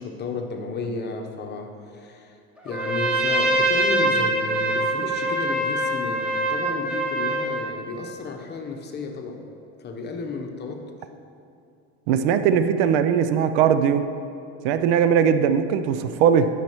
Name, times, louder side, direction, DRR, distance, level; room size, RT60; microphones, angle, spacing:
voice 1, 0.0-2.4 2.6-9.4 9.8-10.9, left 4 dB, 30° left, 3 dB, 0.9 m, -33 dB
Trumpet, 2.7-7.7, right 1 dB, 5° right, 1.2 m, -24 dB
voice 2, 12.1-14.1 14.6-16.5, right 7 dB, 75° right, 10 dB, 0.5 m, -20 dB
11.5 x 5.7 x 3.1 m, 2.7 s
supercardioid pair, 110°, 33 cm